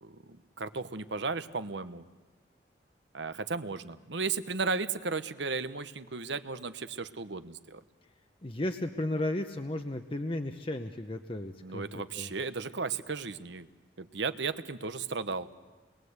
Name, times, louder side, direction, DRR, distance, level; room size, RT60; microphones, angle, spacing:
voice 1, 0.0-2.1 3.1-7.8 11.6-13.7 14.0-15.5, right 4 dB, 75° right, 11 dB, 1.1 m, -35 dB
voice 2, 8.4-11.8 12.1-12.3, left 1 dB, 30° left, 6 dB, 0.8 m, -34 dB
29.5 x 21.5 x 8.1 m, 1.3 s
head